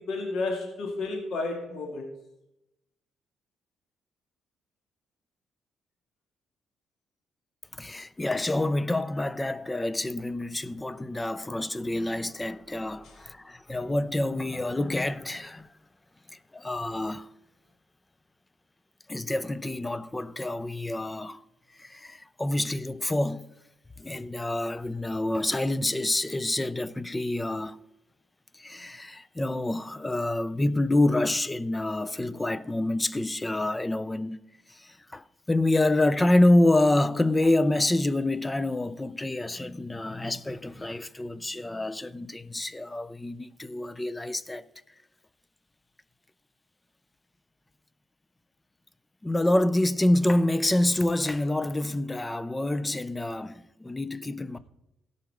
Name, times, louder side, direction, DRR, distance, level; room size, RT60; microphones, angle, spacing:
voice 1, 0.0-2.1 13.0-13.1, left 3 dB, 70° left, 2.1 m, -32 dB
voice 2, 7.8-15.7 16.5-17.3 19.1-21.4 21.8-23.5 24.0-27.8 28.6-34.4 34.7-44.6 49.2-54.6, left 1 dB, 15° left, 0.5 m, -27 dB
17.0 x 5.7 x 4.9 m
cardioid pair, 90°, 0 cm